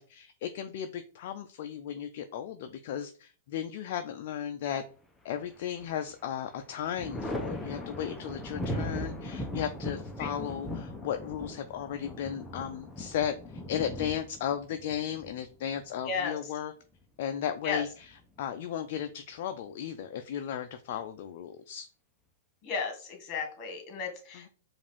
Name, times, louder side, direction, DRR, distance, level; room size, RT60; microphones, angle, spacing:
voice 1, 0.0-4.8 5.2-16.7 17.2-21.9 24.3-24.5, left 9 dB, 55° left, 7 dB, 0.4 m, -35 dB
Thunder, 5.4-6.1 6.5-16.1 17.6-18.4, left 1 dB, 5° left, 0.7 m, -39 dB
voice 2, 16.0-16.4 17.6-17.8 22.6-24.5, left 5 dB, 35° left, 3 dB, 1.7 m, -34 dB
4.9 x 2.5 x 3.5 m, 0.39 s
hypercardioid pair, 120°, 0 cm